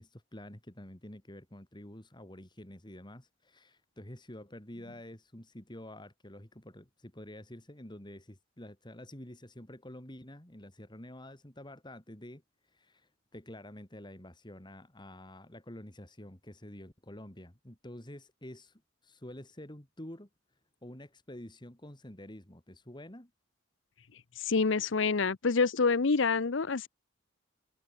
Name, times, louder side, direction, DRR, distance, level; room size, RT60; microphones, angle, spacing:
voice 1, 0.0-12.4 12.7-20.3 20.8-23.3, left 1 dB, 20° left, 2.8 m, -48 dB
voice 2, 24.4-26.9, left 4 dB, 65° left, 0.7 m, -27 dB
head